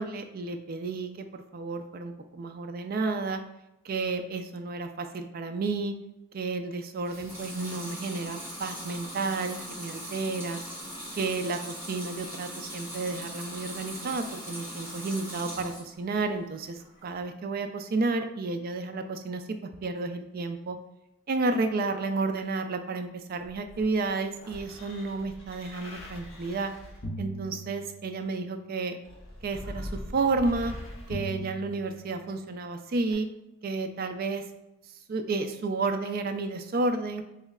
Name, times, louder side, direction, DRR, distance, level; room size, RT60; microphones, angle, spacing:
voice 1, 0.0-3.4 3.8-5.9 6.3-10.6 11.1-20.8 21.3-26.7 27.2-29.0 29.4-30.7 31.1-33.3 33.6-34.5 35.1-37.2, right 3 dB, 45° right, 7 dB, 0.3 m, -31 dB
Water tap faucet / Sink (filling or washing) / Liquid, 7.0-15.9 16.3-17.1, equal, 10° right, 1.3 m, -40 dB
sound 1, 23.4-28.3 29.0-32.4 33.1-33.2, equal, 75° left, 1.0 m, -41 dB
3.1 x 3.0 x 3.6 m, 0.90 s
head